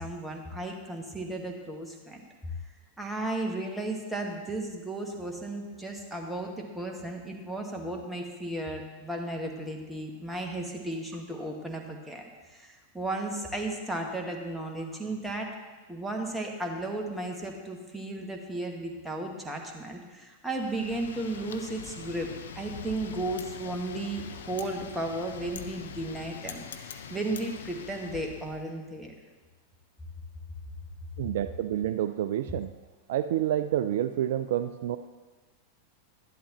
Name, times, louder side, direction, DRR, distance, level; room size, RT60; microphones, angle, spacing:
voice 1, 0.0-2.2 3.0-12.2 12.5-15.5 15.9-29.1, right 2 dB, 5° right, 1 dB, 1.5 m, -34 dB
Wind, 20.5-28.7, left 7 dB, 60° left, 0.6 m, -43 dB
voice 2, 31.2-32.7 33.1-35.0, right 11 dB, 55° right, 11 dB, 0.3 m, -28 dB
12.0 x 11.0 x 3.0 m, 1.3 s
figure-of-eight pair, 90°, 0 cm